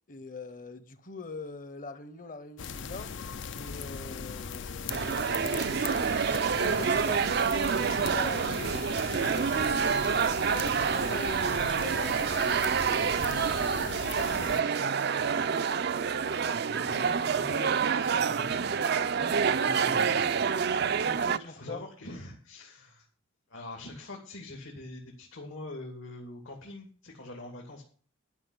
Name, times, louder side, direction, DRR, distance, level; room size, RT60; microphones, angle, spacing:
voice 1, 0.1-3.1 3.5-6.1 6.4-7.3 7.8-9.9 10.3-13.9 14.2-14.9 19.1-19.5 21.0-21.8, left 3 dB, 40° left, 1.0 m, -43 dB
sound 1, 2.6-14.6, left 5 dB, 60° left, 0.5 m, -39 dB
sound 2, 4.9-21.4, right 6 dB, 50° right, 0.4 m, -27 dB
voice 2, 16.4-18.7 19.4-20.5 21.4-23.1 23.5-27.8, left 2 dB, 75° left, 2.7 m, -44 dB
12.0 x 5.9 x 8.0 m
head